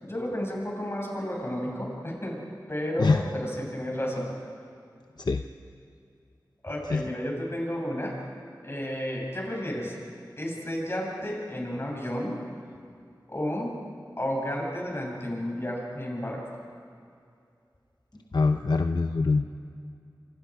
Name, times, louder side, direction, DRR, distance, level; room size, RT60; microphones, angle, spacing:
voice 1, 0.0-2.4 2.7-4.3 6.6-8.1 8.6-9.9 10.4-12.4 13.3-13.8 14.2-16.4 18.1-18.2, equal, 35° left, -2 dB, 7.9 m, -32 dB
voice 2, 18.3-19.5, left 3 dB, 70° left, 6 dB, 0.8 m, -23 dB
27.0 x 26.5 x 5.1 m, 2.4 s
wide cardioid pair, 45°, 8 cm